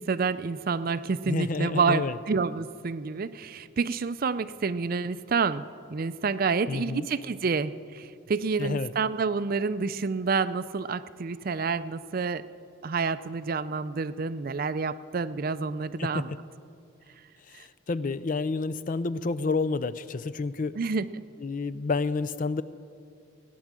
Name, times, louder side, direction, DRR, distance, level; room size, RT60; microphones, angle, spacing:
voice 1, 0.0-5.6 5.9-12.4 12.8-16.3 17.5-17.7 20.8-21.1, right 4 dB, 45° right, 14 dB, 0.4 m, -28 dB
voice 2, 1.3-2.2 6.7-7.1 8.6-8.9 16.0-16.4 17.5-20.7 21.4-22.6, left 4 dB, 40° left, 15 dB, 0.4 m, -29 dB
17.0 x 10.0 x 7.4 m, 2.4 s
head